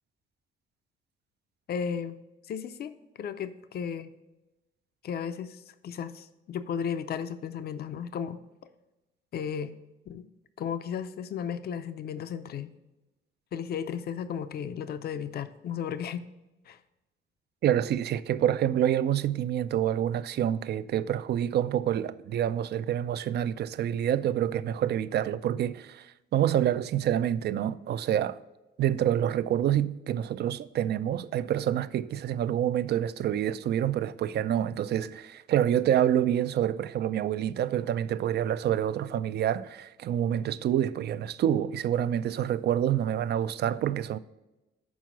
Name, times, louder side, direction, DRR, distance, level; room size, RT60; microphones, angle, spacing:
voice 1, 1.7-2.2 2.5-4.1 5.0-8.4 9.3-9.7 10.1-10.3 10.6-12.7 13.5-16.2 16.7-16.8, left 7 dB, 50° left, 0.5 m, -34 dB
voice 2, 17.6-26.1 26.3-28.4 28.8-44.2, right 10 dB, 55° right, 0.4 m, -27 dB
6.2 x 4.6 x 6.0 m
cardioid pair, 90°, 20 cm